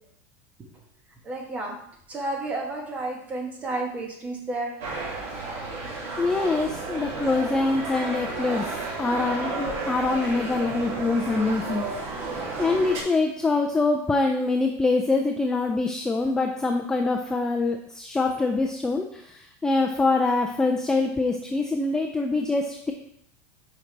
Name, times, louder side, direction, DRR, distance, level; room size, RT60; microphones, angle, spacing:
voice 1, 1.2-1.8 2.1-4.8, right 2 dB, 15° right, 1 dB, 1.3 m, -31 dB
sound 1, 4.8-13.0, right 3 dB, 70° right, 2.9 m, -32 dB
voice 2, 6.2-11.8 12.6-22.9, left 3 dB, 5° left, 3 dB, 0.3 m, -24 dB
8.9 x 5.2 x 3.3 m, 0.72 s
supercardioid pair, 170°, 8 cm